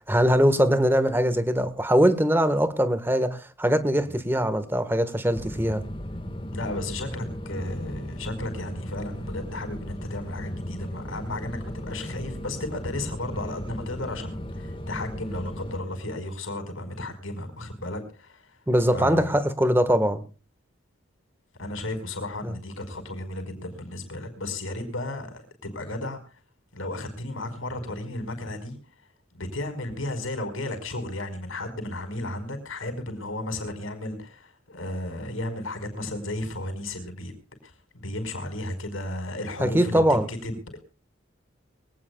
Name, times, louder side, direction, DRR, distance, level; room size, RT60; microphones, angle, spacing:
voice 1, 0.1-5.8 18.7-20.2 22.4-22.5 39.6-40.3, equal, 10° right, 12 dB, 1.5 m, -22 dB
sound 1, 5.3-15.8, equal, 25° left, 1.7 m, -36 dB
voice 2, 6.5-18.6 18.9-19.4 21.6-26.4 26.7-28.8 29.3-37.4 37.6-40.0 40.3-40.8, left 1 dB, 80° left, 8 dB, 5.1 m, -34 dB
23.5 x 18.0 x 2.4 m, 0.35 s
head